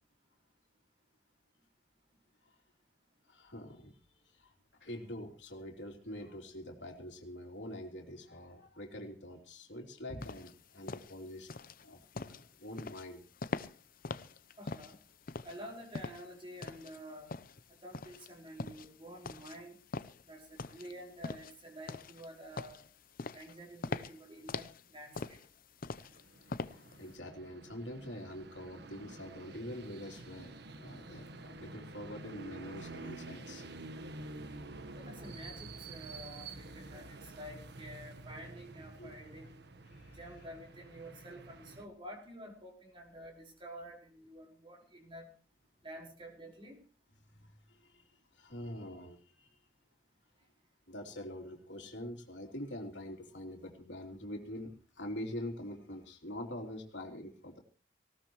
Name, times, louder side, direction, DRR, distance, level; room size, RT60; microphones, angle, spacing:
voice 1, 3.3-4.0 4.2-4.5 4.8-11.5 11.8-13.2 26.5-33.6 39.0-39.1 39.9-40.2 47.3-49.5 50.9-57.6, left 1 dB, 70° left, 2 dB, 3.4 m, -45 dB
sound 1, 10.2-27.1, left 3 dB, 50° left, 0.7 m, -43 dB
voice 2, 14.6-15.0 15.4-17.3 17.7-19.8 20.2-22.8 23.3-25.4 35.0-39.5 40.1-45.3 45.8-46.8, equal, 30° right, 1 dB, 5.1 m, -49 dB
sound 2, 26.0-41.8, right 2 dB, 65° right, 1.3 m, -49 dB
19.0 x 18.0 x 3.1 m, 0.36 s
head